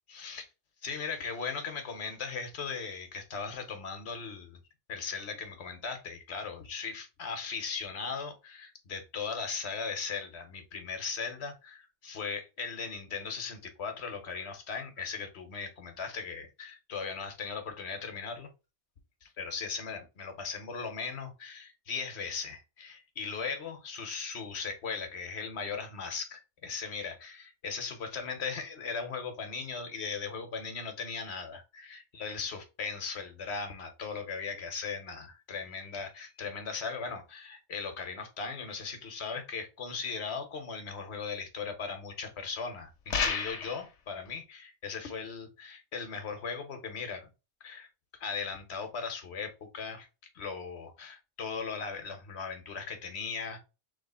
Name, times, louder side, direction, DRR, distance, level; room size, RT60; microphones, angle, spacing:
voice 1, 0.1-0.5 0.8-4.6 4.9-18.5 19.2-47.3 47.6-47.9 48.2-50.1 50.3-53.6, left 5 dB, 70° left, 1.3 m, -38 dB
sound 1, 43.1-43.8, left 5 dB, 90° left, 1.2 m, -30 dB
3.4 x 3.1 x 4.1 m
omnidirectional pair, 1.2 m